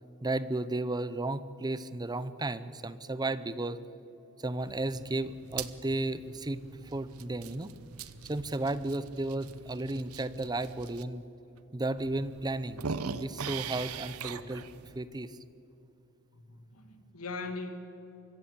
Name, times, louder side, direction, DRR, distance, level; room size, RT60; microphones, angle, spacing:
voice 1, 0.2-3.8 4.4-7.7 8.2-11.2 11.7-14.6 15.0-15.4, right 2 dB, 20° right, 15 dB, 0.6 m, -34 dB
sound 1, 4.6-11.0 11.6-11.7 12.0-15.0, right 6 dB, 75° right, 0.9 m, -42 dB
voice 2, 16.3-17.7, left 3 dB, 80° left, 7 dB, 2.2 m, -40 dB
24.0 x 15.0 x 8.1 m, 2.9 s
head